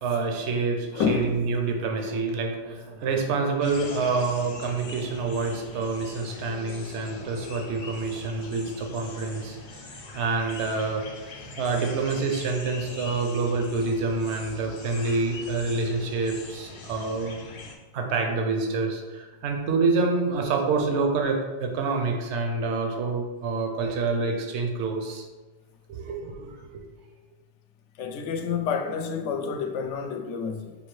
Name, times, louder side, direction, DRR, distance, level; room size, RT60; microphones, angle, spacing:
voice 1, 0.0-9.6 10.1-11.0 11.6-17.4 17.9-25.2 25.9-26.5, right 4 dB, 75° right, 0.9 m, -27 dB
voice 2, 0.9-1.3 28.0-30.7, left 6 dB, 80° left, 0.9 m, -28 dB
sound 1, 3.6-17.8, left 3 dB, 55° left, 0.6 m, -42 dB
5.3 x 2.7 x 3.1 m
omnidirectional pair, 1.2 m